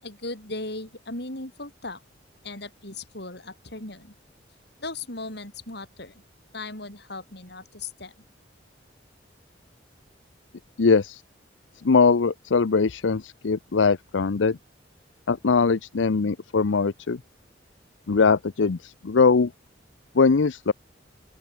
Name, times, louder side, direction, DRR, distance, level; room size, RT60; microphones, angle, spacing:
voice 1, 0.0-2.0 2.4-4.1 4.8-6.2 6.5-8.1, left 2 dB, 60° left, 7.4 m, -37 dB
voice 2, 10.8-11.2 11.8-14.6 15.3-17.2 18.1-19.5 20.1-20.7, left 4 dB, 80° left, 0.6 m, -21 dB
open air
head